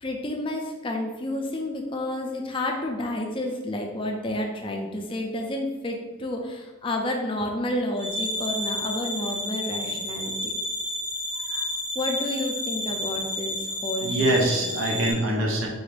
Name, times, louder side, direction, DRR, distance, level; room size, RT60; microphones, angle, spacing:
voice 1, 0.0-10.5 11.9-14.1 14.6-15.1, left 1 dB, 25° left, 2 dB, 0.4 m, -30 dB
sound 1, 8.0-15.1, left 1 dB, 65° right, 0.9 m, -31 dB
voice 2, 14.0-15.7, right 1 dB, 90° right, 0 dB, 0.7 m, -24 dB
3.8 x 2.5 x 3.2 m, 1.2 s
head